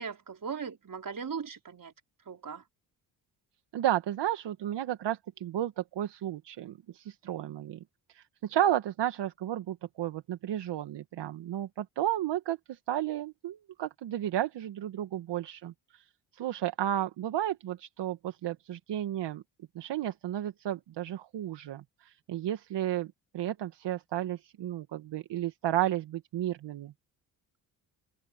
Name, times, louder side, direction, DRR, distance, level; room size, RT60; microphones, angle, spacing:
voice 1, 0.0-1.9 2.3-2.6, right 6 dB, 45° right, 5.2 m, -38 dB
voice 2, 3.7-7.8 8.1-16.0 16.3-19.4 19.8-26.9, right 12 dB, 70° right, 1.7 m, -33 dB
supercardioid pair, 50°, 44 cm